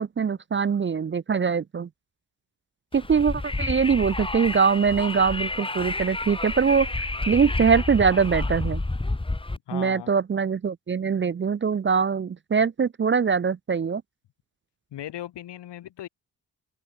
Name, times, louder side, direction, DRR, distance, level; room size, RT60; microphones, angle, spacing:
voice 1, 0.0-1.9 2.9-6.9 7.3-8.8 9.7-14.0, right 6 dB, 30° right, 0.4 m, -23 dB
Wind, 2.9-9.6, left 2 dB, 10° left, 1.0 m, -30 dB
voice 2, 9.7-10.1 14.9-16.1, left 12 dB, 75° left, 0.8 m, -37 dB
open air
supercardioid pair, 45°, 42 cm